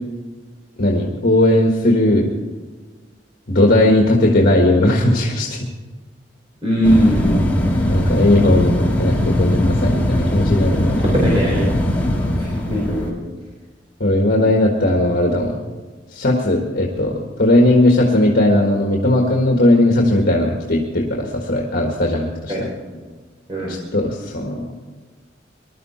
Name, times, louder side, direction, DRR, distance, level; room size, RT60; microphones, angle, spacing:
voice 1, 0.8-2.3 3.5-5.7 7.9-11.0 14.0-15.6 16.1-22.7 23.7-24.7, left 1 dB, 55° left, 0 dB, 1.7 m, -17 dB
voice 2, 6.6-7.5 11.0-11.7 12.3-13.2 22.5-22.6 22.9-23.0 23.5-23.8, equal, 30° right, -5 dB, 4.0 m, -19 dB
sound 1, 6.8-13.1, left 1 dB, 10° left, 2.2 m, -19 dB
20.5 x 12.5 x 4.4 m, 1.3 s
head